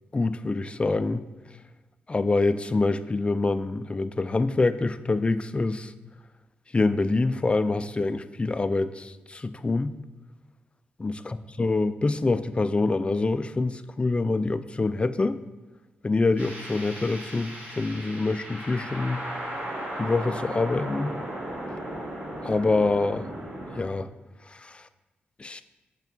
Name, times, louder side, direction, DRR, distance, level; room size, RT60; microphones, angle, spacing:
voice 1, 0.1-1.2 2.1-5.9 6.7-10.0 11.0-15.4 16.0-19.2 20.0-21.2 22.4-23.3 23.7-24.1 24.5-24.8 25.4-25.6, left 3 dB, 30° left, 13 dB, 0.4 m, -26 dB
sound 1, 16.4-23.8, right 1 dB, 45° right, 2.4 m, -36 dB
7.1 x 4.6 x 4.0 m, 1.2 s
cardioid pair, 60°, 4 cm